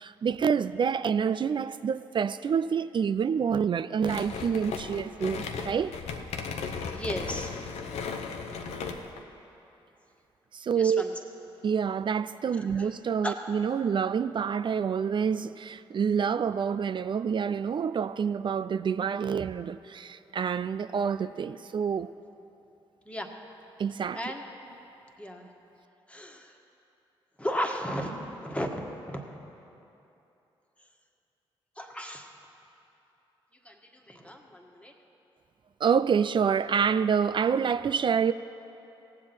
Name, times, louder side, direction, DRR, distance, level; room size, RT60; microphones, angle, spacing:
voice 1, 0.0-6.0 10.5-11.0 11.6-22.1 23.8-24.2 35.8-38.3, right 7 dB, 45° right, 0.3 m, -27 dB
sound 1, 4.0-9.2, left 5 dB, 70° left, 0.8 m, -36 dB
voice 2, 6.8-7.5 10.7-11.1 12.5-12.9 13.2-13.3 23.0-23.3 24.1-24.5 25.2-25.5 26.1-26.5 27.4-29.4 29.7-29.8 31.8-32.3 33.6-34.9, equal, 10° left, 1.6 m, -35 dB
17.5 x 7.6 x 4.4 m
hypercardioid pair, 40°, 12 cm